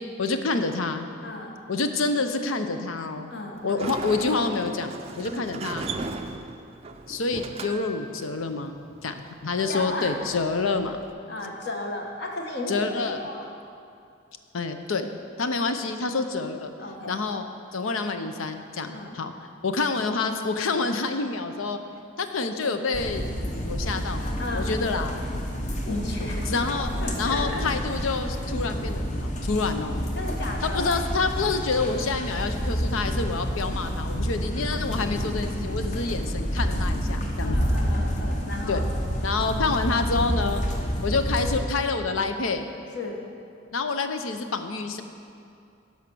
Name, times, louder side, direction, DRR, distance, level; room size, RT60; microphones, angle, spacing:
voice 1, 0.2-1.1 1.7-3.3 3.6-4.9 5.2-5.9 7.1-11.0 12.7-13.2 14.5-15.1 15.4-16.7 17.1-17.5 17.7-19.3 19.6-21.8 22.2-23.3 23.6-24.3 24.5-25.2 26.5-26.9 27.2-30.0 30.6-37.6 38.7-38.8 39.2-40.6 41.0-42.7 43.7-45.0, left 4 dB, 80° left, 8 dB, 0.7 m, -27 dB
voice 2, 3.3-4.0 5.3-5.5 9.6-10.1 11.3-13.5 16.8-17.2 18.9-19.2 24.4-24.7 25.9-27.6 30.1-30.9 34.8-35.1 37.4-38.8 42.9-43.2, left 2 dB, 55° left, 1 dB, 1.2 m, -34 dB
Sliding door, 3.6-11.1, right 3 dB, 30° right, 0.4 m, -38 dB
sound 1, 22.9-41.6, equal, 35° left, 0.9 m, -29 dB
11.0 x 5.8 x 6.1 m, 2.5 s
head